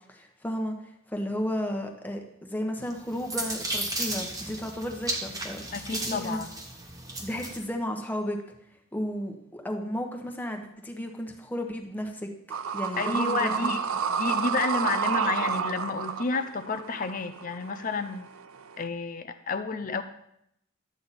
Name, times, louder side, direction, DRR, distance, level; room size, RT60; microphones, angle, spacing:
voice 1, 0.1-6.4 7.2-8.6 8.9-12.3 12.7-13.7, equal, 10° left, 2 dB, 1.1 m, -33 dB
sound 1, 2.9-7.6, right 2 dB, 15° right, 1.2 m, -34 dB
voice 2, 5.7-6.5 13.0-13.8 14.1-18.3 18.8-20.0, left 4 dB, 40° left, 9 dB, 0.5 m, -30 dB
sound 2, 12.5-18.8, right 6 dB, 75° right, 0.5 m, -30 dB
12.0 x 8.6 x 4.2 m, 0.76 s
head